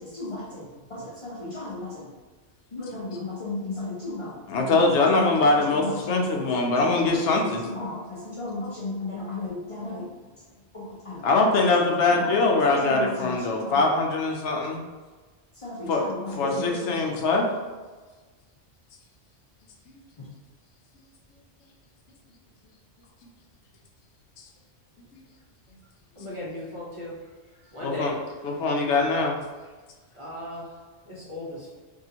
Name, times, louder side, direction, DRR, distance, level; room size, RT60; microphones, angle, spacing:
voice 1, 0.0-2.1 2.7-4.4 4.7-4.8 5.1-5.3 5.7-6.2 6.8-10.1 10.7-11.3 12.1-12.3 12.8-13.9 15.6-16.8 17.0-17.1 20.2-20.3, left 3 dB, 35° left, -6 dB, 0.6 m, -35 dB
voice 2, 4.5-7.7 11.2-14.8 15.9-16.0 16.4-17.5 19.9-20.0 27.8-28.1 28.4-29.4, left 3 dB, 80° left, 1 dB, 0.9 m, -22 dB
voice 3, 26.2-27.1 27.7-28.1 30.1-30.7 31.1-31.7, left 1 dB, 30° right, -7 dB, 0.7 m, -36 dB
3.5 x 2.4 x 2.8 m, 1.3 s
omnidirectional pair, 1.2 m